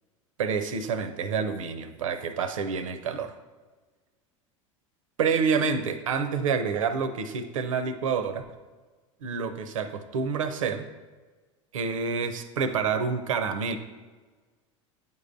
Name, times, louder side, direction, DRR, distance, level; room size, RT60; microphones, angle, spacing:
voice 1, 0.4-3.3 5.2-8.4 9.2-10.9 11.7-13.8, right 5 dB, 75° right, 10 dB, 0.6 m, -28 dB
9.4 x 5.5 x 2.6 m, 1.3 s
hypercardioid pair, 85°, 17 cm